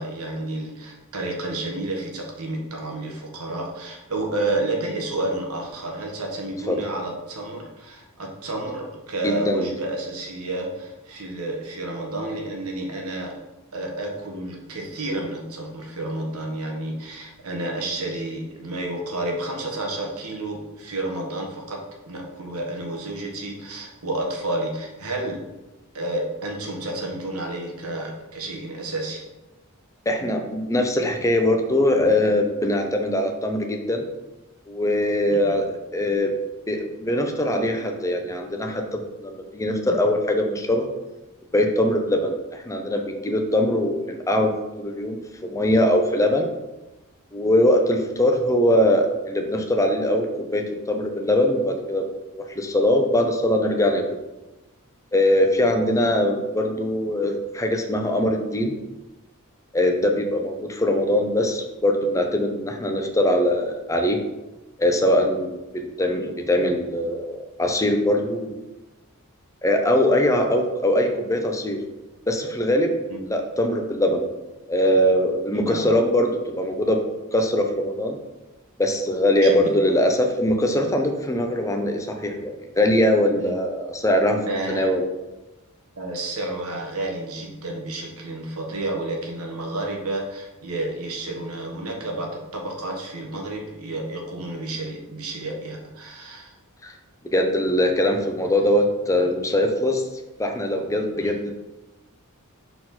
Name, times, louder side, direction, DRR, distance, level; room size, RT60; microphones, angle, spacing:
voice 1, 0.0-13.4 13.7-25.4 25.9-29.2 35.3-35.6 73.1-73.2 75.5-75.9 79.4-79.7 83.4-83.5 84.3-85.0 86.0-96.5 101.2-101.3, right 2 dB, 80° right, 1 dB, 1.4 m, -30 dB
voice 2, 9.2-9.8 30.1-34.0 34.7-36.3 36.7-40.9 41.5-46.5 47.3-52.0 52.3-54.0 55.1-58.7 59.7-64.2 64.8-68.6 69.6-71.8 72.3-73.0 73.2-74.3 74.7-77.0 77.3-78.2 78.8-85.1 96.8-96.9 97.3-100.0 100.4-101.5, left 1 dB, 15° left, 3 dB, 0.7 m, -22 dB
6.1 x 4.4 x 4.2 m, 1.0 s
head